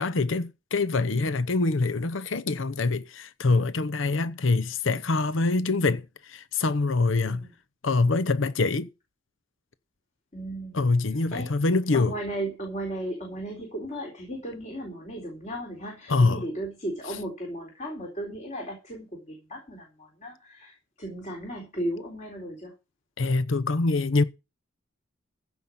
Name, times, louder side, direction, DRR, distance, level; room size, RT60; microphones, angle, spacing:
voice 1, 0.0-7.5 7.8-8.9 10.7-12.1 16.1-16.4 23.2-24.2, left 3 dB, 75° left, 0.8 m, -24 dB
voice 2, 10.3-10.8 11.3-11.5 11.9-22.7, right 1 dB, 35° left, 3.9 m, -35 dB
15.5 x 5.5 x 7.3 m
head